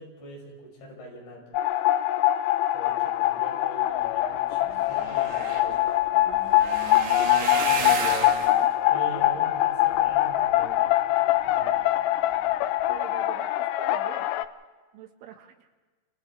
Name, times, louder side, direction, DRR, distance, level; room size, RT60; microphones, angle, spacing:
voice 1, 0.0-1.6 2.7-5.8 7.0-8.4 8.9-11.7, equal, 60° left, -2 dB, 7.4 m, -43 dB
sound 1, 1.5-14.4, left 14 dB, 85° left, 3.4 m, -23 dB
sound 2, 4.2-4.3 4.5-10.9 11.4-11.9 12.3-12.5 12.8-12.9, right 5 dB, 50° right, 2.6 m, -34 dB
voice 2, 12.9-14.3 14.9-15.7, right 9 dB, 80° right, 4 dB, 4.2 m, -44 dB
29.0 x 26.5 x 3.6 m, 1.3 s
omnidirectional pair, 5.7 m